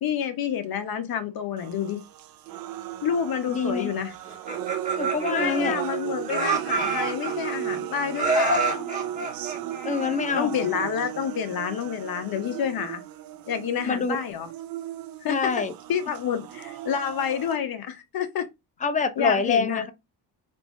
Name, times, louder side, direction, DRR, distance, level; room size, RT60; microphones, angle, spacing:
voice 1, 0.0-2.0 3.0-4.1 5.3-8.9 10.4-13.0 13.5-14.5 15.2-15.6 15.9-18.5 19.2-19.8, left 8 dB, 50° left, 0.9 m, -28 dB
sound 1, 1.6-17.6, right 12 dB, 50° right, 0.5 m, -35 dB
voice 2, 3.5-3.9 5.0-5.8 9.8-10.5 13.8-14.2 15.3-15.7 18.8-19.9, left 5 dB, 15° left, 0.5 m, -25 dB
Laughter, 4.3-6.0 6.3-7.8 8.1-10.4, right 3 dB, 15° right, 1.3 m, -27 dB
3.3 x 2.6 x 3.1 m
supercardioid pair, 85°, 47 cm